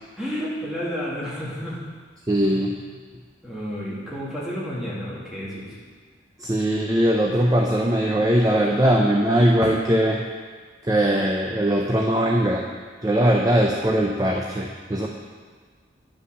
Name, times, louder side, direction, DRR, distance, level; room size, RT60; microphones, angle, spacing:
voice 1, 0.2-1.8 2.5-2.9 3.4-5.8, equal, ahead, -8 dB, 2.3 m, -31 dB
voice 2, 2.3-2.7 6.4-10.2 10.8-12.7 13.0-15.1, right 1 dB, 20° right, 0 dB, 0.5 m, -20 dB
9.9 x 5.6 x 6.4 m, 1.5 s
head